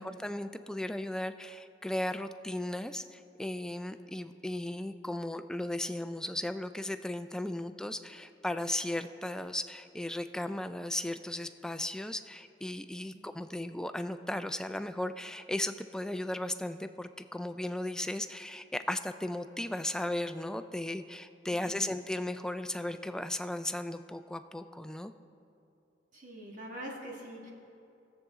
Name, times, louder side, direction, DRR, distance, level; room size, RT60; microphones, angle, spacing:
voice 1, 0.0-25.1, left 1 dB, 5° left, 9 dB, 0.3 m, -36 dB
voice 2, 26.1-27.5, right 1 dB, 45° right, -1 dB, 1.8 m, -44 dB
20.0 x 7.4 x 3.6 m, 2.7 s
head